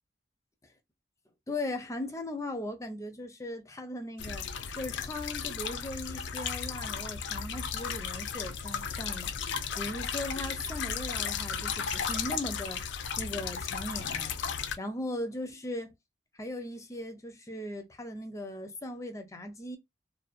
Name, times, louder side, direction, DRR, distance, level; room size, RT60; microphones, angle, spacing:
voice 1, 1.5-4.5 4.8-14.4 14.8-15.9 16.3-19.8, left 1 dB, 15° left, 0.5 m, -38 dB
sound 1, 4.2-14.8, left 7 dB, 75° left, 0.4 m, -35 dB
2.5 x 2.1 x 2.3 m
head